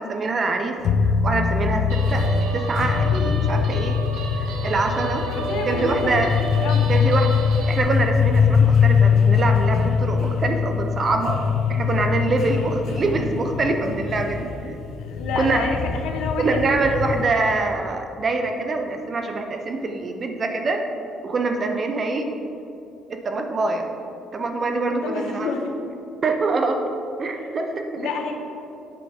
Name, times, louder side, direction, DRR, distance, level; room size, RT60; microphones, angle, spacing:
voice 1, 0.0-4.0 4.4-6.4 6.9-11.4 11.7-14.8 15.4-15.7 16.4-20.8 21.2-22.3 23.1-23.9 24.3-25.5 26.2-26.9 27.2-28.1, right 3 dB, 30° right, 5 dB, 0.4 m, -25 dB
sound 1, 0.8-17.6, left 6 dB, 55° left, 0.4 m, -22 dB
Guitar, 1.9-7.8, right 4 dB, 75° right, 0.8 m, -32 dB
voice 2, 5.2-6.2 6.6-6.8 15.1-16.6 24.9-25.7 28.0-28.4, left 5 dB, 80° left, 3 dB, 0.7 m, -29 dB
7.7 x 3.5 x 4.7 m, 2.7 s
cardioid pair, 160°, 0 cm